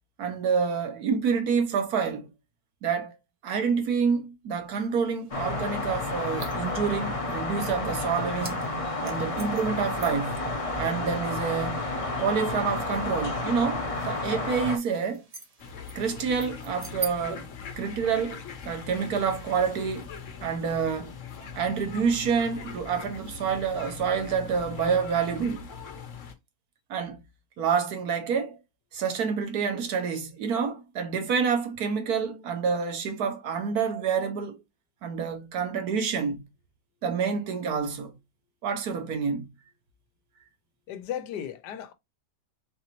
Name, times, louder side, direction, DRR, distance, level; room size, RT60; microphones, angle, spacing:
voice 1, 0.2-2.3 2.8-3.1 3.4-8.6 9.0-10.4 10.7-11.9 12.2-15.2 15.9-17.5 17.8-20.1 20.4-21.2 21.5-25.7 26.9-27.2 27.6-28.6 28.9-34.6 35.0-36.4 37.0-38.1 38.6-39.5, right 6 dB, 70° right, 1.3 m, -28 dB
sound 1, 4.8-17.1, right 7 dB, 35° right, 0.6 m, -46 dB
sound 2, 5.3-14.8, left 2 dB, 30° left, 0.7 m, -31 dB
sound 3, 15.6-26.3, left 6 dB, 55° left, 1.1 m, -41 dB
voice 2, 40.9-41.9, left 10 dB, 80° left, 1.2 m, -35 dB
4.1 x 3.9 x 2.9 m
omnidirectional pair, 1.8 m